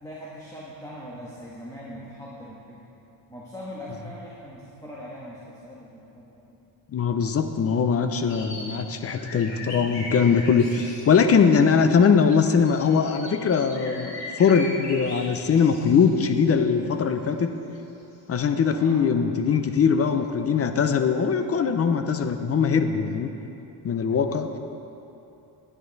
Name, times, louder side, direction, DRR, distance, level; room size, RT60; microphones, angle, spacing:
voice 1, 0.0-2.8 3.3-6.5 18.7-19.1, equal, 10° left, -5 dB, 1.3 m, -41 dB
voice 2, 6.9-17.5 18.3-23.3 23.8-24.5, left 6 dB, 35° left, 8 dB, 0.6 m, -21 dB
sound 1, 8.3-11.9 12.3-16.5 17.8-17.9 18.2-18.4, left 2 dB, 70° left, 2.2 m, -39 dB
10.0 x 10.0 x 4.0 m, 2.9 s
cardioid pair, 115°, 43 cm